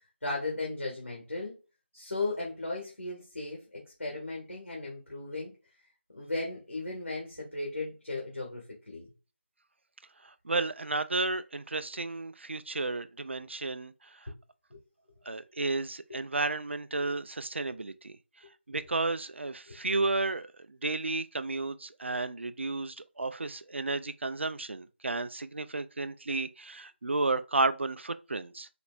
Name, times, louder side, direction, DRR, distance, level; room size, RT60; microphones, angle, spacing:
voice 1, 0.2-1.5 1.9-5.5 6.1-9.1 14.7-14.8 16.1-16.2 19.7-19.8, left 2 dB, 80° left, 1.7 m, -36 dB
voice 2, 10.2-14.3 15.3-18.2 18.7-28.7, right 3 dB, 70° right, 0.4 m, -32 dB
4.2 x 2.9 x 2.4 m
figure-of-eight pair, 160°, 7 cm